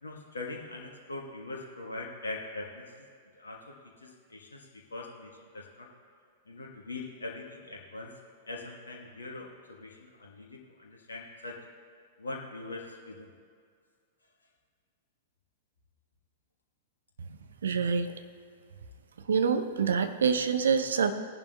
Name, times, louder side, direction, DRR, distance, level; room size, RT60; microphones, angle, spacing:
voice 1, 0.0-3.1 3.3-5.9 6.5-8.1 8.5-11.6 12.2-13.3, left 2 dB, 70° left, -1 dB, 1.3 m, -42 dB
voice 2, 17.6-18.2 19.3-21.1, right 6 dB, 65° right, 8 dB, 0.7 m, -26 dB
18.5 x 11.0 x 2.3 m, 2.2 s
figure-of-eight pair, 100°, 0 cm